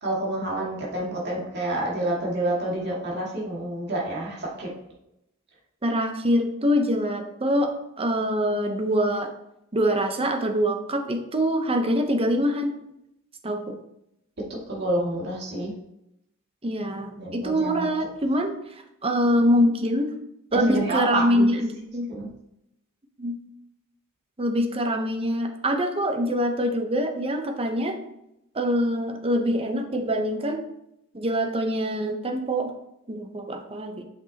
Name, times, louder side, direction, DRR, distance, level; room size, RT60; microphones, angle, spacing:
voice 1, 0.0-4.7 14.7-15.7 17.2-17.9 20.7-21.5 22.1-22.3, right 1 dB, 50° right, -4 dB, 2.0 m, -28 dB
voice 2, 5.8-9.3 9.7-12.8 13.4-13.8 16.6-18.5 19.0-20.1 20.5-22.1 23.2-23.4 24.4-28.0 28.5-30.7 31.1-32.7 33.1-34.0, equal, 25° right, 5 dB, 0.7 m, -24 dB
8.0 x 6.0 x 2.8 m, 0.82 s
head